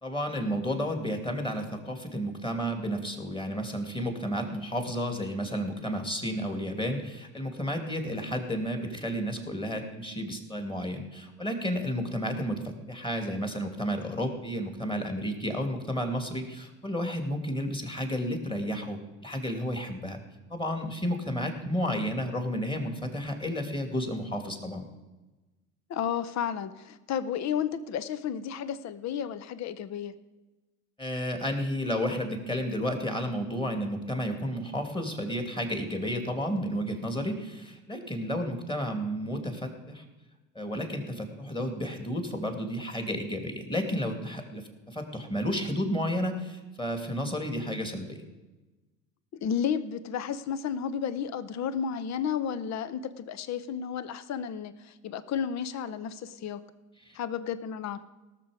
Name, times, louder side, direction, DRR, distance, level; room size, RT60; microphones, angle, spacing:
voice 1, 0.0-20.2 20.5-24.9 31.0-40.0 40.5-48.2 57.1-57.2, equal, 10° left, 5 dB, 2.7 m, -32 dB
voice 2, 25.9-30.1 49.4-56.6 57.1-58.0, left 8 dB, 40° left, 15 dB, 0.8 m, -32 dB
18.5 x 6.8 x 5.1 m, 1.1 s
hypercardioid pair, 65°, 42 cm